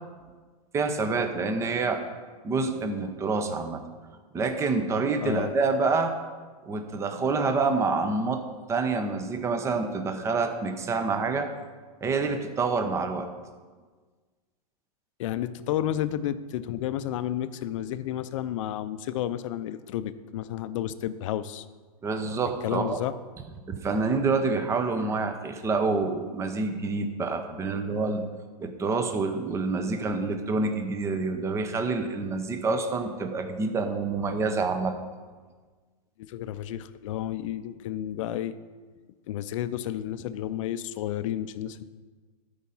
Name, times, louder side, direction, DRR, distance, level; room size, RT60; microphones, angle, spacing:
voice 1, 0.7-2.0 2.4-3.8 4.3-6.1 6.7-8.4 8.7-11.5 12.0-13.3 22.0-23.0 23.7-28.2 28.6-34.9, right 4 dB, 15° right, 6 dB, 0.8 m, -27 dB
voice 2, 5.2-5.5 15.2-21.6 22.6-23.1 30.0-30.1 36.2-38.5 39.3-41.8, left 11 dB, 55° left, 14 dB, 0.6 m, -31 dB
13.0 x 5.1 x 5.6 m, 1.4 s
hypercardioid pair, 140°, 19 cm